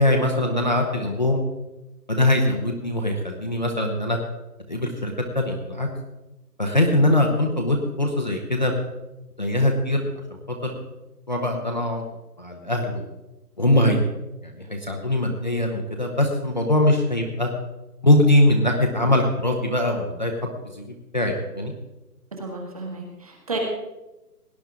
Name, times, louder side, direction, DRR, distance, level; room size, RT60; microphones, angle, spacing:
voice 1, 0.0-1.4 2.1-4.2 4.7-5.9 6.6-8.7 9.4-10.1 10.5-10.7 11.3-12.0 12.4-13.1 13.6-14.1 14.4-17.5 18.0-20.3 20.7-21.7, left 1 dB, 30° left, 2 dB, 0.9 m, -22 dB
voice 2, 22.4-23.6, right 3 dB, 25° right, 1 dB, 1.8 m, -32 dB
17.5 x 10.5 x 3.7 m, 1.0 s
hypercardioid pair, 180°, 47 cm